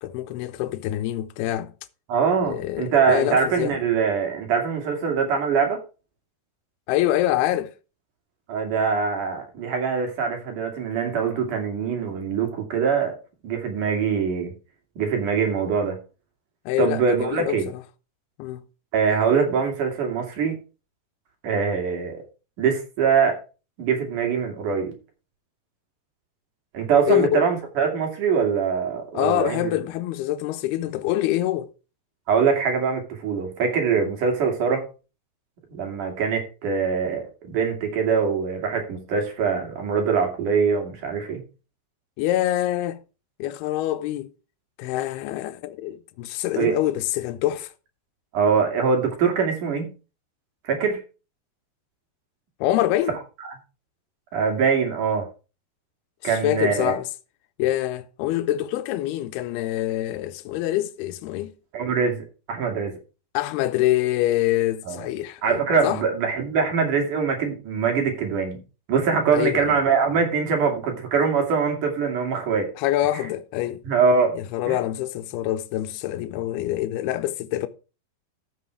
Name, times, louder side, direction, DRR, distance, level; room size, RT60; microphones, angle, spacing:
voice 1, 0.0-1.7 2.4-3.8 6.9-7.7 16.7-17.8 18.4-18.6 27.1-27.5 29.1-31.7 42.2-43.0 43.4-44.3 44.8-47.7 52.6-53.1 56.2-57.1 57.6-61.5 63.3-66.0 69.3-69.8 72.8-73.8 74.3-77.7, left 14 dB, 80° left, 2.7 m, -25 dB
voice 2, 2.1-5.8 8.5-13.2 13.4-14.5 15.0-16.0 16.8-17.7 18.9-20.6 21.4-22.2 22.6-23.4 23.8-24.9 26.7-29.7 32.3-34.8 35.7-41.4 46.6-46.8 48.3-49.9 50.6-51.0 54.3-55.3 56.2-56.9 61.7-63.0 64.9-65.1 65.4-68.6 68.9-72.7 73.8-74.3 74.7-74.8, right 6 dB, 55° right, 3.9 m, -23 dB
13.5 x 6.4 x 4.7 m
omnidirectional pair, 4.7 m